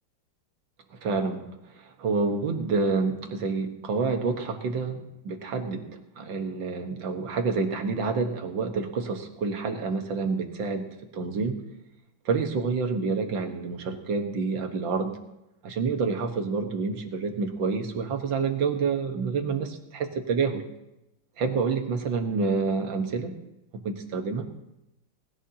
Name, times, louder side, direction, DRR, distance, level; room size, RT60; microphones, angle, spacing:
voice 1, 0.9-1.5 1.8-10.9 11.1-11.6 12.3-15.1 15.6-20.6 21.4-23.3 23.8-24.5, right 4 dB, 60° right, 5 dB, 2.0 m, -28 dB
19.5 x 15.0 x 2.9 m, 0.90 s
omnidirectional pair, 2.4 m